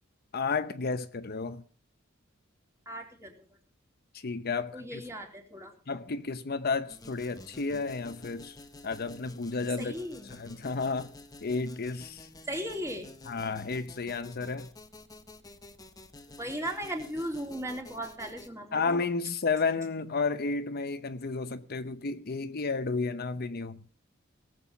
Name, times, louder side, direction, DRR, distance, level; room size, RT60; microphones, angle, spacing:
voice 1, 0.3-1.6 4.1-5.0 5.9-8.6 8.8-9.9 10.3-11.1 11.4-12.3 13.3-14.7 18.7-23.8, left 4 dB, 50° left, 0.8 m, -32 dB
voice 2, 2.9-3.4 4.7-5.7 9.8-10.3 12.5-13.1 16.4-19.0, equal, 15° right, 3.7 m, -37 dB
sound 1, 6.9-18.5, left 2 dB, 20° left, 1.2 m, -50 dB
18.5 x 7.9 x 7.0 m
head